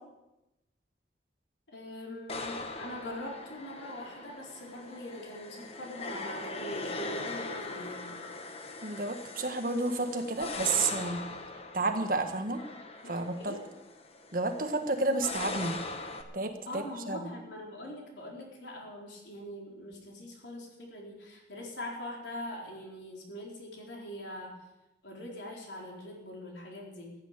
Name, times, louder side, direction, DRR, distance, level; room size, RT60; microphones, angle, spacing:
voice 1, 1.7-8.2 13.0-13.6 16.7-24.5 25.0-27.2, left 1 dB, 85° left, -1 dB, 4.1 m, -42 dB
sound 1, 2.3-16.2, left 3 dB, 35° left, 1.2 m, -41 dB
voice 2, 8.8-11.2 11.7-12.6 13.1-13.5 14.3-15.7 16.3-17.3, right 3 dB, 50° right, 6 dB, 1.5 m, -31 dB
14.5 x 8.9 x 8.1 m, 0.97 s
head